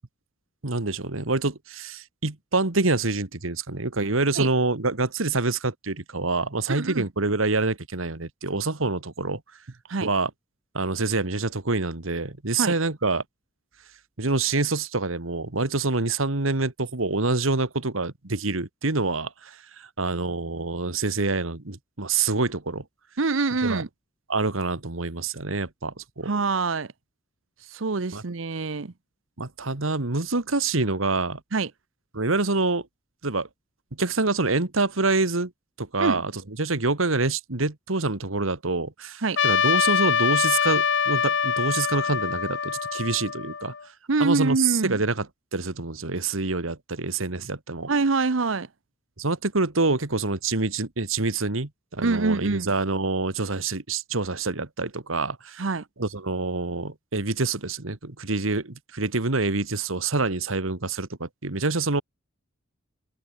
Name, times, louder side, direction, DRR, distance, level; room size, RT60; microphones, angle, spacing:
voice 1, 0.6-9.4 10.0-10.3 10.7-13.2 14.2-22.8 23.6-23.8 24.3-26.3 28.1-28.2 29.4-31.4 32.1-32.9 33.2-33.5 34.0-35.5 35.8-36.3 36.6-43.7 44.2-45.3 45.5-47.9 49.2-55.6 56.0-62.0, right 3 dB, 90° right, 1.9 m, -26 dB
voice 2, 6.7-7.1 9.9-10.1 12.6-12.7 23.2-23.9 26.3-26.9 27.7-28.9 31.5-31.7 36.0-36.2 39.2-39.4 44.1-45.0 47.9-48.7 52.0-52.7 55.6-55.8, right 3 dB, 70° right, 0.9 m, -25 dB
Trumpet, 39.4-43.8, left 7 dB, 65° left, 1.3 m, -24 dB
head